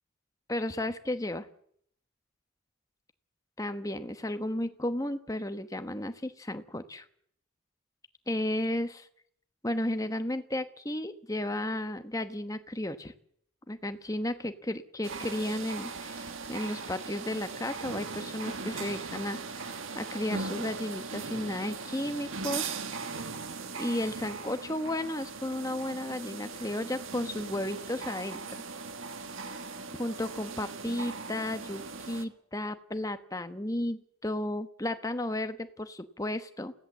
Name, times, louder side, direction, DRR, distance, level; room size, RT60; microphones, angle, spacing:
voice 1, 0.5-1.5 3.6-7.1 8.3-9.1 9.6-13.1 13.7-22.8 23.7-28.6 30.0-36.7, left 1 dB, 15° left, 9 dB, 1.1 m, -34 dB
sound 1, 15.0-32.2, right 4 dB, 75° right, 1.6 m, -39 dB
27.5 x 16.0 x 7.5 m, 0.70 s
head